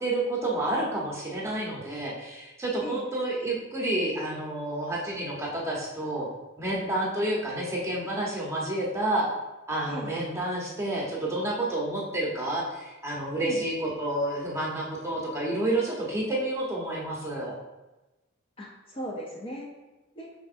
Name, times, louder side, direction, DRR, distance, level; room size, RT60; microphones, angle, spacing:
voice 1, 0.0-6.3 6.6-9.3 9.7-17.6, right 1 dB, 15° right, -4 dB, 0.9 m, -29 dB
voice 2, 9.9-10.2 13.4-13.7 18.6-19.7 20.2-20.3, equal, 25° left, -2 dB, 0.5 m, -37 dB
5.0 x 3.6 x 2.5 m, 1.1 s
head